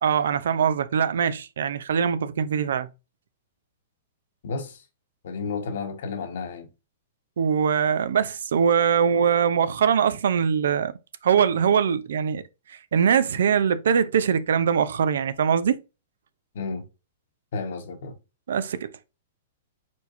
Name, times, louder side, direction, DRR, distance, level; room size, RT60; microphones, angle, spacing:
voice 1, 0.0-2.9 7.4-10.9 11.2-12.4 12.7-15.8 18.5-18.9, right 7 dB, 80° right, 0.6 m, -22 dB
voice 2, 4.4-4.8 5.2-6.7 16.5-16.9 17.5-18.2, left 4 dB, 65° left, 1.3 m, -32 dB
4.5 x 4.3 x 2.6 m
hypercardioid pair, 165°, 0 cm